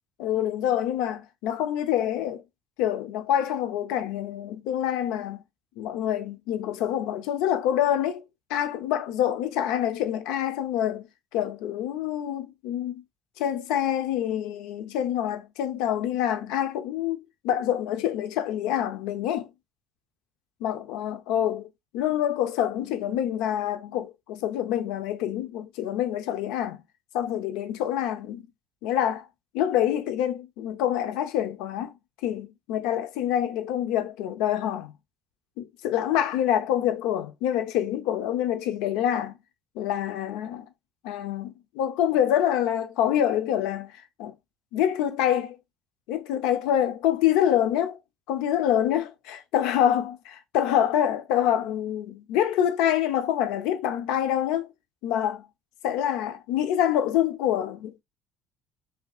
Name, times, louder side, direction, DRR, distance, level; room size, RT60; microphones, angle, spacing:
voice 1, 0.2-2.4 2.8-5.4 5.8-8.2 8.5-11.1 11.3-13.0 13.4-19.5 20.6-26.8 27.1-28.4 28.8-29.3 29.5-31.9 32.2-34.9 35.6-39.3 39.7-40.7 41.0-44.3 44.7-45.6 46.1-47.9 48.3-54.7 55.0-55.5 55.8-58.0, left 10 dB, 90° left, 0.6 m, -26 dB
5.6 x 2.8 x 2.4 m
cardioid pair, 165°, 0 cm